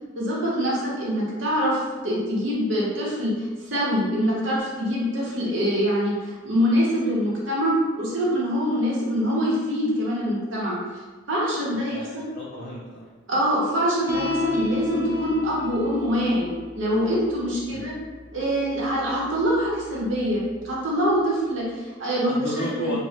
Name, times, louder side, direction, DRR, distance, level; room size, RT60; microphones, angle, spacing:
voice 1, 0.1-10.7 11.3-12.2 13.3-16.5 16.7-17.9 18.3-22.9, equal, 75° right, -6 dB, 0.9 m, -24 dB
voice 2, 11.9-13.1 17.7-17.9 22.2-23.0, left 1 dB, 50° left, -5 dB, 0.4 m, -33 dB
sound 1, 14.1-20.7, left 2 dB, 10° right, 0.4 m, -34 dB
3.1 x 2.1 x 2.8 m, 1.4 s
head